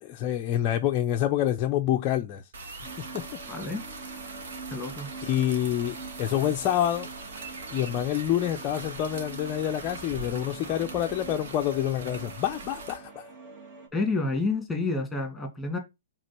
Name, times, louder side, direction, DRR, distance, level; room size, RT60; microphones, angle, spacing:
voice 1, 0.0-2.4 3.1-3.2 5.2-7.1 7.7-13.3, left 11 dB, 30° left, 0.6 m, -27 dB
sound 1, 2.5-13.0, right 3 dB, 60° right, 1.7 m, -41 dB
sound 2, 2.8-13.9, right 4 dB, 35° right, 2.0 m, -45 dB
voice 2, 3.5-3.8 4.7-5.1 13.9-15.8, left 3 dB, 5° left, 2.4 m, -29 dB
5.1 x 3.8 x 5.8 m
hypercardioid pair, 140°, 0 cm